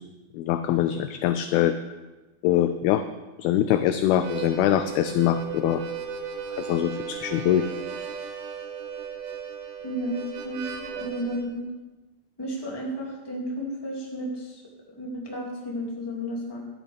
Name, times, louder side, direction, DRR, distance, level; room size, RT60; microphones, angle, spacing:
voice 1, 0.3-1.8 2.4-3.0 3.4-5.8 6.6-7.7, left 11 dB, 85° left, 10 dB, 2.2 m, -23 dB
Harmonica, 4.1-11.5, right 7 dB, 80° right, 3.2 m, -36 dB
voice 2, 9.8-11.6 12.4-14.6 15.0-16.6, equal, 10° left, -3 dB, 1.4 m, -33 dB
16.0 x 12.0 x 3.5 m, 1.1 s
omnidirectional pair, 4.9 m